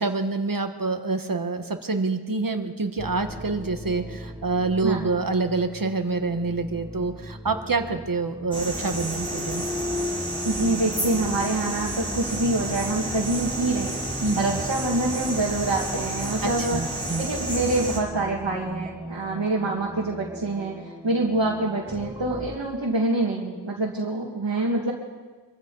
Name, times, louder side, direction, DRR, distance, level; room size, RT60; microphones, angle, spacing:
voice 1, 0.0-9.6 14.2-14.6 16.4-17.3, right 3 dB, 50° right, 7 dB, 1.3 m, -27 dB
sound 1, 3.0-22.6, equal, 10° right, 1.0 m, -38 dB
sound 2, 8.5-18.0, right 1 dB, 10° left, 3.8 m, -31 dB
voice 2, 10.4-16.9 17.2-24.9, right 2 dB, 85° right, -4 dB, 2.0 m, -26 dB
24.5 x 14.5 x 4.0 m, 1.4 s
wide cardioid pair, 55°, 43 cm